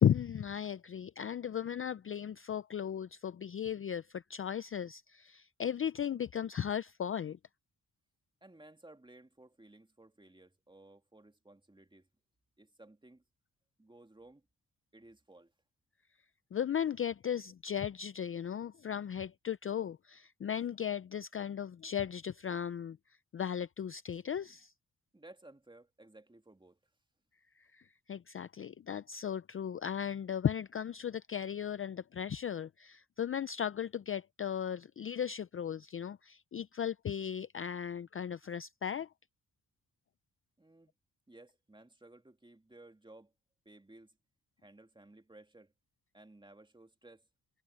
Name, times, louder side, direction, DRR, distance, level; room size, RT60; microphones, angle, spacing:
voice 1, 0.0-7.4 16.5-23.0 23.3-24.7 27.6-39.1, left 8 dB, 35° left, 0.5 m, -36 dB
voice 2, 8.4-12.1 12.6-13.2 13.8-14.5 14.9-15.5 25.1-26.8 40.6-40.9 41.3-43.3 43.6-44.2 44.6-45.7 46.1-47.3, right 2 dB, 15° right, 2.6 m, -57 dB
cardioid pair, 90°, 37 cm